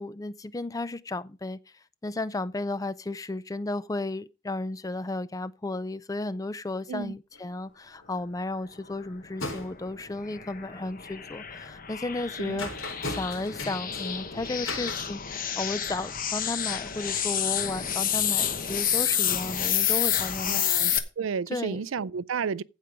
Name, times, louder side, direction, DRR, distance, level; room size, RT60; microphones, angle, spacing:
voice 1, 0.0-1.6 2.0-12.7 13.0-20.7 21.5-21.8, left 2 dB, 15° left, 0.4 m, -34 dB
sound 1, 7.3-7.6 7.8-8.4 8.7-9.9 10.5-11.2 11.7-15.8, left 2 dB, 65° left, 4.1 m, -39 dB
sound 2, 9.6-21.0, left 9 dB, 40° left, 1.1 m, -29 dB
voice 2, 20.4-22.6, right 6 dB, 70° right, 0.4 m, -32 dB
15.5 x 5.2 x 4.7 m
head